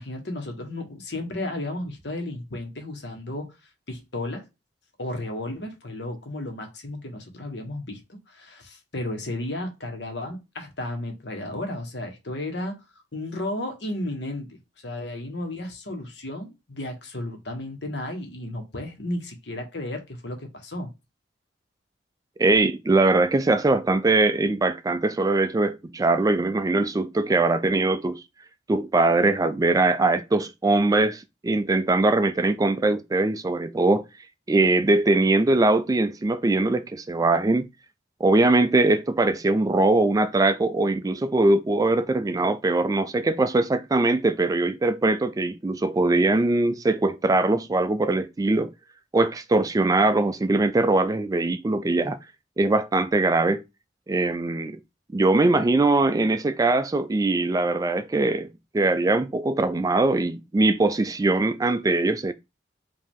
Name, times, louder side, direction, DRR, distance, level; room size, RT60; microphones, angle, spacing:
voice 1, 0.0-3.5 3.9-4.5 5.0-8.0 8.3-12.8 13.1-14.6 14.8-20.9, left 1 dB, 70° left, 1.3 m, -33 dB
voice 2, 22.4-28.2 28.7-34.1 34.5-37.7 38.2-48.7 49.1-52.2 52.6-53.6 54.1-54.8 55.1-58.5 58.7-62.3, right 2 dB, 20° right, 0.3 m, -21 dB
5.2 x 2.8 x 3.6 m
head